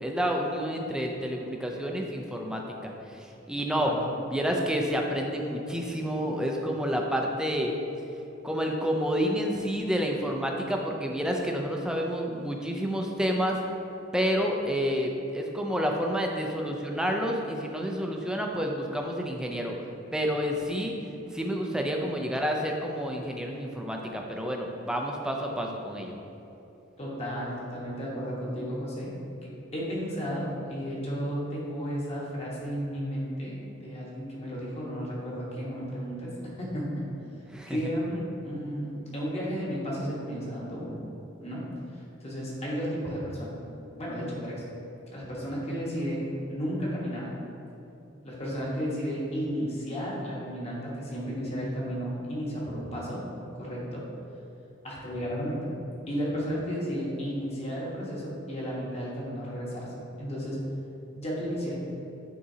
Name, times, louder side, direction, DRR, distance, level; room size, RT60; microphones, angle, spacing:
voice 1, 0.0-3.9 4.3-7.7 8.4-13.6 14.1-19.8 20.1-20.9 21.3-26.2 37.5-37.8, equal, 5° right, 1 dB, 0.4 m, -29 dB
voice 2, 27.0-29.1 29.7-36.3 36.6-37.0 37.7-41.0 41.4-41.6 41.9-43.6 44.0-44.6 45.1-47.3 48.2-53.2 53.5-54.0 54.8-55.7 56.1-59.8 60.2-60.6 61.1-61.7, equal, 30° left, -5 dB, 1.2 m, -33 dB
9.4 x 3.7 x 2.8 m, 2.9 s
head